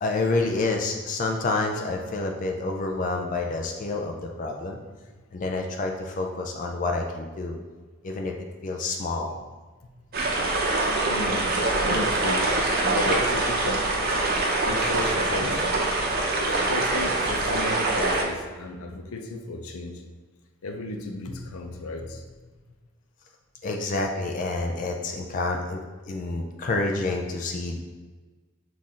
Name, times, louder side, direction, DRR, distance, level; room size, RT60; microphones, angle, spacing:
voice 1, 0.0-4.8 5.3-7.6 8.0-8.3 8.6-9.3 23.6-27.8, left 3 dB, 40° left, 2 dB, 0.3 m, -28 dB
sound 1, 10.1-18.2, right 2 dB, 45° right, 0.7 m, -24 dB
voice 2, 11.1-11.5 11.9-12.6 12.8-13.9 14.6-15.7 16.5-20.0 20.6-22.2, left 2 dB, 85° left, 4 dB, 0.6 m, -34 dB
5.8 x 2.5 x 3.6 m, 1.3 s
head